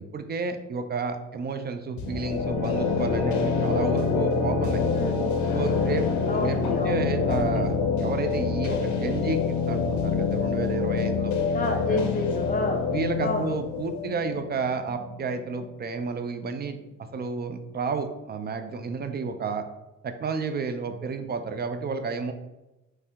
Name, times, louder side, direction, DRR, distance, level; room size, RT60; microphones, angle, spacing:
voice 1, 0.0-4.8 5.5-7.7 8.0-12.0 12.9-16.8 17.1-19.6 20.0-22.3, right 4 dB, 35° right, 8 dB, 0.4 m, -31 dB
sound 1, 2.0-15.7, left 5 dB, 70° left, 0.6 m, -26 dB
voice 2, 4.9-5.3 6.3-7.6 11.5-12.9 13.2-13.5, left 3 dB, 30° left, 2 dB, 0.7 m, -30 dB
3.2 x 2.8 x 3.5 m, 0.99 s
cardioid pair, 90°, 30 cm